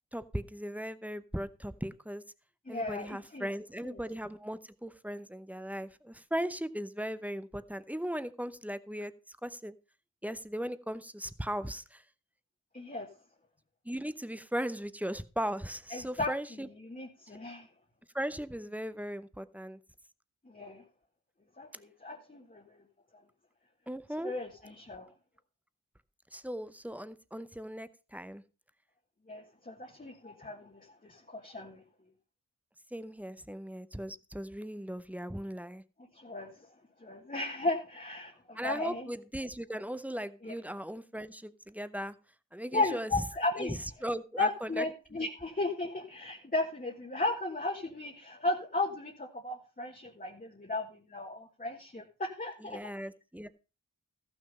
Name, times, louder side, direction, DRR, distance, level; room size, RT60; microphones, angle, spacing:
voice 1, 0.1-2.2 2.7-9.7 10.2-12.0 13.8-16.7 18.1-19.8 23.9-24.3 26.3-28.4 32.9-35.8 38.5-42.1 42.5-43.2 43.6-44.8 52.7-53.5, equal, 5° right, 13 dB, 0.7 m, -38 dB
voice 2, 2.6-3.5 3.8-4.0 12.7-13.1 15.9-16.3 16.8-17.7 20.4-20.8 21.6-22.8 23.1-23.2 24.2-25.1 29.3-31.8 36.1-36.7 37.0-39.1 40.4-40.5 42.7-43.8 44.4-52.8, left 2 dB, 25° left, 0 dB, 1.6 m, -35 dB
14.5 x 6.3 x 5.4 m, 0.34 s
wide cardioid pair, 90°, 34 cm